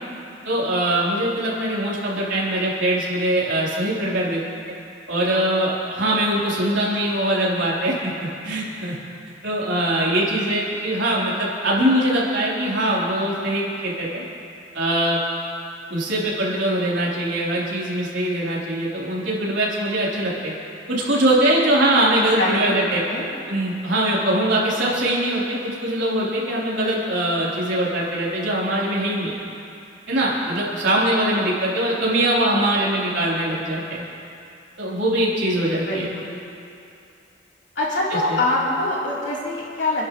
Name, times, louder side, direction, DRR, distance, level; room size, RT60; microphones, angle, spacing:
voice 1, 0.4-4.4 5.1-9.0 9.4-14.2 14.7-15.2 15.9-20.5 20.9-23.0 23.5-29.3 30.1-34.0 34.8-36.1 38.1-38.4, right 1 dB, 90° right, -6 dB, 3.7 m, -22 dB
voice 2, 22.2-22.7 23.0-23.3 35.9-36.3 37.8-40.1, left 2 dB, 70° left, -6 dB, 3.6 m, -24 dB
28.5 x 11.0 x 3.2 m, 2.6 s
head